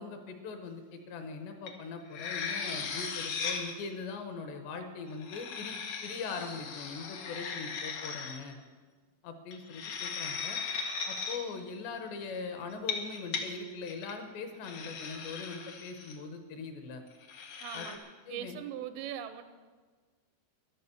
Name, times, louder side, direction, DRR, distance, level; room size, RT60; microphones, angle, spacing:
voice 1, 0.0-5.8 6.0-8.6 9.2-10.6 11.1-17.0 17.7-17.9 18.3-18.6, left 4 dB, 70° left, 6 dB, 3.1 m, -41 dB
sound 1, 1.7-1.8 2.1-3.7 5.1-8.4 9.5-11.4 12.7-13.4 13.8-14.1 14.6-16.2 17.2-18.0, left 5 dB, 90° left, 1.6 m, -37 dB
voice 2, 17.6-18.0 18.3-19.4, right 10 dB, 85° right, 10 dB, 3.4 m, -40 dB
14.0 x 11.5 x 7.0 m, 1.4 s
omnidirectional pair, 5.5 m